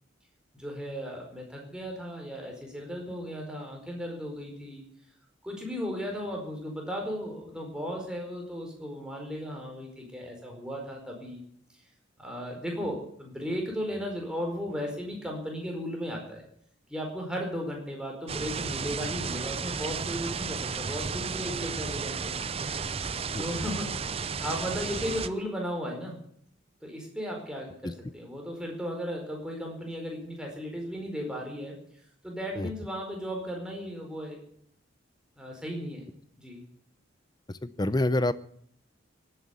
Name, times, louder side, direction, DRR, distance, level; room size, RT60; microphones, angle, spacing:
voice 1, 0.5-4.8 5.4-11.4 12.2-16.4 16.9-22.4 23.4-23.9 24.4-26.2 26.8-31.8 32.2-34.4 35.4-36.1 36.4-36.6, equal, 5° right, 0 dB, 4.7 m, -35 dB
sound 1, 18.3-25.3, right 5 dB, 30° right, 0.6 m, -33 dB
voice 2, 37.5-38.3, left 1 dB, 20° left, 16 dB, 0.6 m, -27 dB
18.5 x 9.4 x 8.3 m, 0.64 s
head